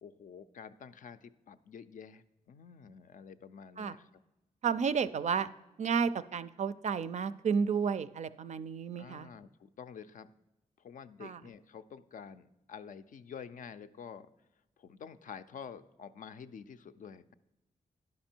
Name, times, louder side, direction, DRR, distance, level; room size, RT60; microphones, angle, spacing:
voice 1, 0.0-4.1 9.0-10.3 10.8-14.3 14.8-17.3, left 7 dB, 60° left, 11 dB, 0.4 m, -49 dB
voice 2, 4.6-5.5 5.8-9.3 11.2-11.4, right 6 dB, 50° right, 13 dB, 0.4 m, -32 dB
11.0 x 5.2 x 4.4 m, 0.96 s
cardioid pair, 80°, 15 cm